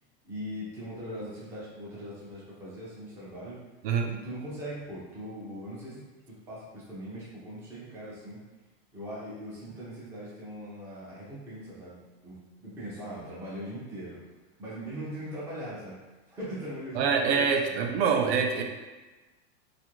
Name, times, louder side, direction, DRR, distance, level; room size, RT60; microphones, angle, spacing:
voice 1, 0.2-3.6 4.1-8.4 8.9-12.0 12.2-14.2 14.6-16.0 16.3-18.0, equal, 10° right, -7 dB, 0.4 m, -40 dB
voice 2, 16.9-18.6, right 6 dB, 75° right, 3 dB, 0.5 m, -25 dB
2.5 x 2.4 x 2.9 m, 1.2 s
supercardioid pair, 165°, 32 cm